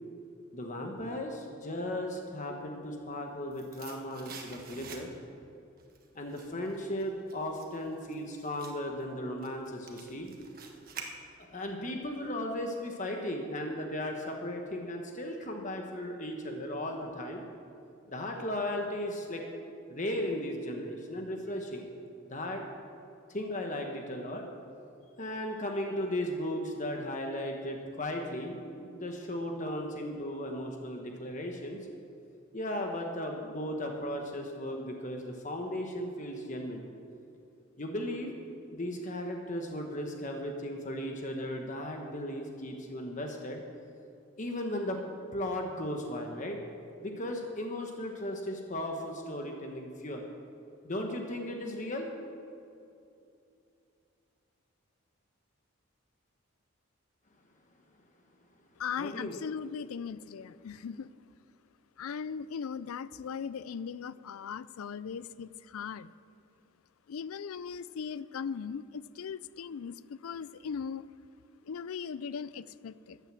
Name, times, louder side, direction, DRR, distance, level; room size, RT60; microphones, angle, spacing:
voice 1, 0.5-5.1 6.1-10.3 11.4-17.4 18.1-19.4 19.9-21.9 22.2-22.6 23.3-24.4 25.2-31.8 32.5-36.8 37.8-38.3 38.7-43.6 44.4-45.0 45.3-46.6 47.0-50.2 50.8-52.1 59.0-59.4, left 1 dB, 35° left, 2 dB, 1.1 m, -36 dB
sound 1, 3.2-5.4 5.8-11.7 12.0-12.1, right 5 dB, 45° right, 1.4 m, -48 dB
voice 2, 58.8-61.1 62.0-66.1 67.1-71.1 71.6-73.2, left 6 dB, 85° left, 18 dB, 0.4 m, -39 dB
13.5 x 9.3 x 7.5 m, 2.6 s
head